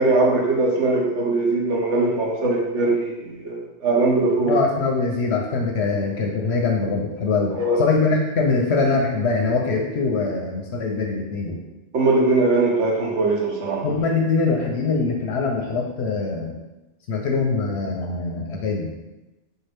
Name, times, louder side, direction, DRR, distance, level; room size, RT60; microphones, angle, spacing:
voice 1, 0.0-4.5 7.5-7.8 11.9-13.8, right 2 dB, 65° right, -2 dB, 1.1 m, -21 dB
voice 2, 4.4-11.6 13.8-16.5 17.1-18.9, left 4 dB, 65° left, 1 dB, 0.8 m, -23 dB
4.2 x 2.8 x 3.3 m, 1.0 s
omnidirectional pair, 1.3 m